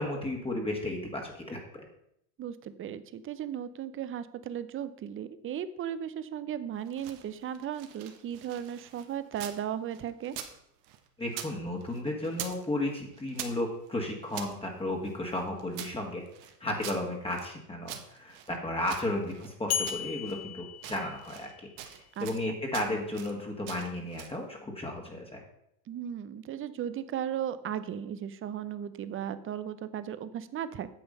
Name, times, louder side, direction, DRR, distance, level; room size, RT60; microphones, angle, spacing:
voice 1, 0.0-1.6 11.2-16.2 16.6-21.5 22.2-25.4, left 1 dB, 10° left, 0 dB, 1.6 m, -33 dB
voice 2, 2.4-10.3 22.2-22.6 25.9-30.9, right 9 dB, 25° right, 13 dB, 0.7 m, -36 dB
sound 1, 6.8-9.6 9.9-11.5 11.8-12.6 12.9-14.5 15.1-17.5 17.9-19.5 19.9-20.4 20.7-21.5 21.8-22.4 22.7-23.3 23.7-24.4, right 10 dB, 60° right, 1.4 m, -44 dB
sound 2, 19.7-21.8, left 9 dB, 30° left, 0.8 m, -35 dB
9.1 x 6.8 x 5.5 m, 0.75 s
supercardioid pair, 105°, 48 cm